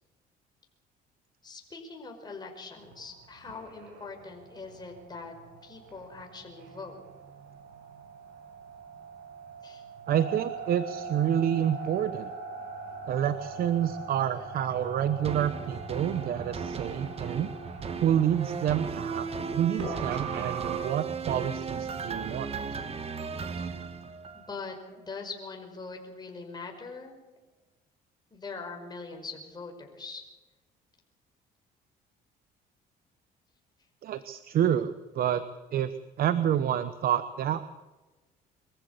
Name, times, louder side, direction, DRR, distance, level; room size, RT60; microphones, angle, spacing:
voice 1, 1.4-5.3 5.6-7.0 9.6-9.8 23.6-23.7 24.3-27.2 28.3-30.2, left 4 dB, 25° left, 2 dB, 5.4 m, -42 dB
sound 1, 2.8-20.8, right 4 dB, 85° right, 7.4 m, -42 dB
voice 2, 10.1-12.3 13.1-17.5 18.0-19.3 19.5-22.5 34.0-35.4 35.7-37.7, right 10 dB, 60° right, 12 dB, 1.0 m, -28 dB
sound 2, 15.2-24.6 25.1-25.2, right 5 dB, 35° right, 1.6 m, -36 dB
24.5 x 14.5 x 8.4 m, 1.2 s
cardioid pair, 110°, 17 cm